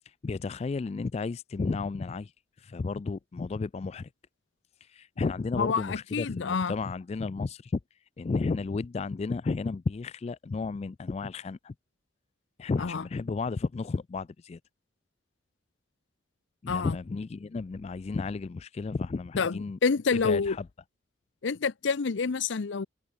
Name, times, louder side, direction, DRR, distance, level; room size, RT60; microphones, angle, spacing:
voice 1, 0.1-2.3 2.6-4.1 4.8-7.8 8.2-11.7 12.6-14.6 16.6-19.8 20.1-20.7, left 4 dB, 35° left, 0.3 m, -33 dB
voice 2, 5.6-6.7 12.8-13.0 16.7-17.0 19.4-20.6 21.4-22.9, left 5 dB, 70° left, 0.6 m, -28 dB
head